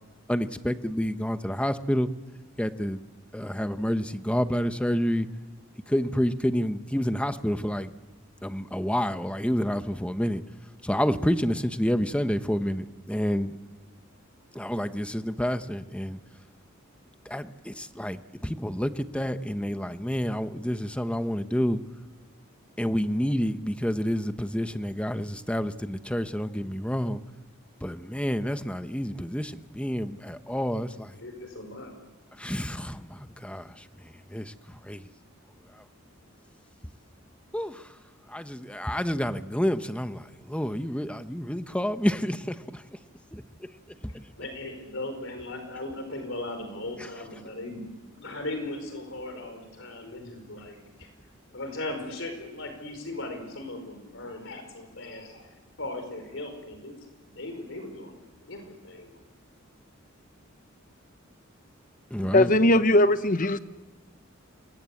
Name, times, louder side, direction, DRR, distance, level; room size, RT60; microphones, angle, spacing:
voice 1, 0.3-2.1 2.6-3.0 3.3-5.3 5.9-7.9 8.4-10.4 10.8-13.5 14.5-16.2 17.3-21.8 22.8-27.2 27.8-31.1 32.4-33.7 34.3-34.5 34.9-35.0 37.5-37.8 38.3-42.6 43.3-43.7 44.0-44.1 62.1-62.5, equal, 5° left, 10 dB, 1.0 m, -29 dB
voice 2, 31.2-31.9 44.4-47.9 48.2-50.8 51.5-55.4 55.8-57.0 57.2-59.2, left 2 dB, 65° left, 6 dB, 4.9 m, -38 dB
voice 3, 62.2-63.6, left 1 dB, 40° left, 12 dB, 1.0 m, -20 dB
28.0 x 22.0 x 8.5 m, 1.2 s
head